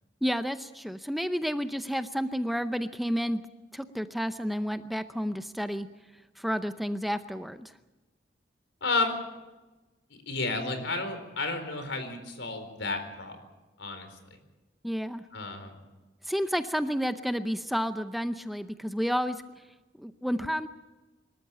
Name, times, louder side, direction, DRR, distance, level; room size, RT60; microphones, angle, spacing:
voice 1, 0.2-3.4 3.7-5.9 6.4-7.7 14.8-15.2 16.3-19.4 20.0-20.7, equal, ahead, 10 dB, 0.6 m, -30 dB
voice 2, 8.8-9.2 10.3-13.4 13.8-14.1 15.3-15.8, left 3 dB, 90° left, 8 dB, 4.2 m, -31 dB
25.5 x 13.5 x 8.9 m, 1.1 s
head